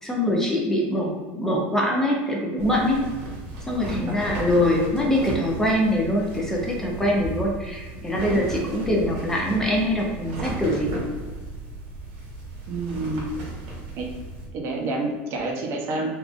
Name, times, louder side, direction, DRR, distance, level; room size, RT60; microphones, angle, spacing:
voice 1, 0.0-3.0 3.7-11.0, left 1 dB, 10° left, -2 dB, 0.5 m, -23 dB
sound 1, 2.6-14.5, right 2 dB, 85° right, 1.1 m, -35 dB
voice 2, 12.7-13.3 14.0-14.1 14.5-16.1, right 2 dB, 50° right, 0 dB, 0.6 m, -28 dB
3.6 x 2.5 x 2.4 m, 1.3 s
cardioid pair, 140°, 5 cm